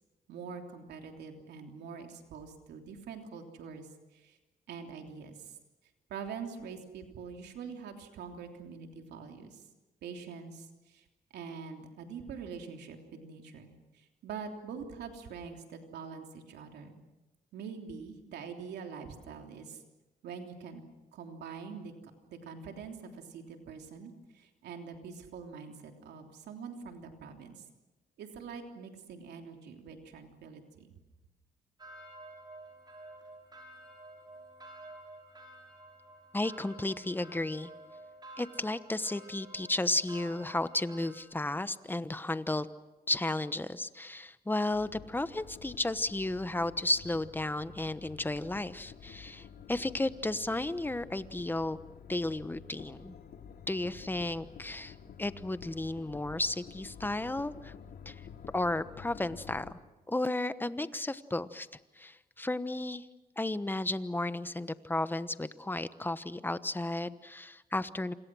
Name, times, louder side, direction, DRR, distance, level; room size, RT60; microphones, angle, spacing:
voice 1, 0.3-3.9 4.1-4.4 4.7-5.5 6.1-9.6 10.0-11.0 11.3-17.0 17.5-19.8 20.2-20.8 21.1-21.9 22.3-27.6 28.2-30.9, right 6 dB, 90° right, 3 dB, 3.3 m, -44 dB
sound 1, 31.8-41.2, right 1 dB, 25° right, 6.4 m, -51 dB
voice 2, 36.3-37.7 38.4-42.7 43.1-51.8 52.1-53.1 53.7-57.7 58.0-58.1 58.5-59.7 60.1-61.7 62.0-63.1 63.4-68.1, left 2 dB, 10° left, 13 dB, 1.1 m, -33 dB
Nightmare Approaching sound, 44.7-59.7, left 7 dB, 70° left, 3.2 m, -50 dB
28.0 x 26.0 x 6.3 m, 1.1 s
cardioid pair, 95°, 17 cm